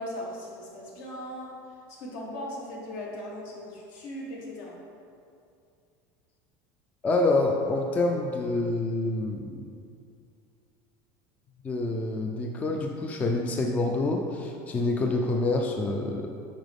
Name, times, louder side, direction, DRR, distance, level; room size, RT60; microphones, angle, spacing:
voice 1, 0.0-1.6 1.9-4.8, left 1 dB, 70° left, -3 dB, 1.6 m, -38 dB
voice 2, 7.0-9.7 11.6-16.3, left 2 dB, 15° left, 2 dB, 0.3 m, -27 dB
7.3 x 4.8 x 3.5 m, 2.4 s
cardioid pair, 150°, 9 cm